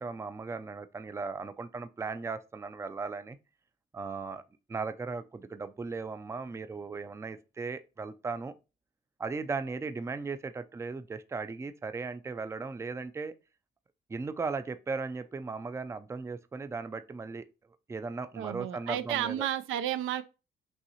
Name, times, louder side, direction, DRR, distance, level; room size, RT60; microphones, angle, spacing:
voice 1, 0.0-3.4 3.9-4.4 4.7-8.5 9.2-13.3 14.1-17.5 17.9-19.5, right 4 dB, 15° right, 0.4 m, -37 dB
voice 2, 18.4-20.2, right 11 dB, 85° right, 0.5 m, -32 dB
5.5 x 2.9 x 2.8 m
cardioid pair, 90°, 20 cm